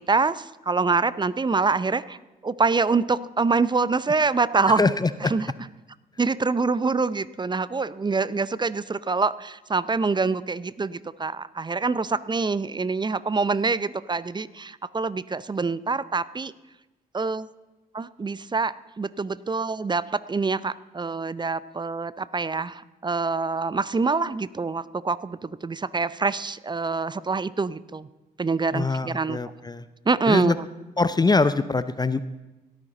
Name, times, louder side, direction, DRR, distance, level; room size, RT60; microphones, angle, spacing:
voice 1, 0.0-2.2 2.4-4.9 5.2-5.5 6.2-16.5 17.1-17.5 17.9-28.1 28.4-29.4 30.1-30.7, right 4 dB, 20° right, 17 dB, 0.6 m, -25 dB
voice 2, 4.8-5.3 28.7-29.8 30.3-30.6 31.0-32.2, left 3 dB, 20° left, 13 dB, 0.6 m, -23 dB
17.0 x 13.0 x 3.9 m, 1.1 s
figure-of-eight pair, 40°, 21 cm